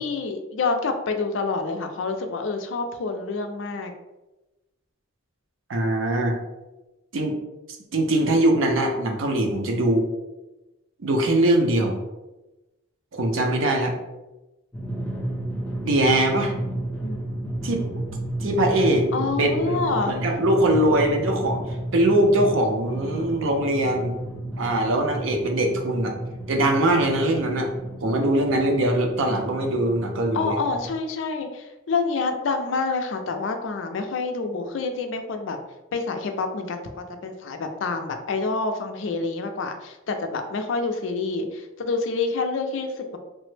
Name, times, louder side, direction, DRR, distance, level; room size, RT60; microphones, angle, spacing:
voice 1, 0.0-3.9 17.0-17.2 19.1-20.1 30.3-35.6 35.9-36.8 37.2-43.2, left 4 dB, 70° left, 6 dB, 0.4 m, -27 dB
voice 2, 5.7-6.4 7.1-7.3 7.9-10.1 11.0-12.0 13.1-14.0 15.8-16.5 17.6-17.9 18.4-19.1 19.4-24.2 24.6-26.1 26.5-27.7 28.0-30.6, right 1 dB, 80° right, 3 dB, 0.6 m, -22 dB
Drum, 14.7-30.9, right 1 dB, 5° left, 0.6 m, -32 dB
3.2 x 2.0 x 3.2 m, 1.0 s
head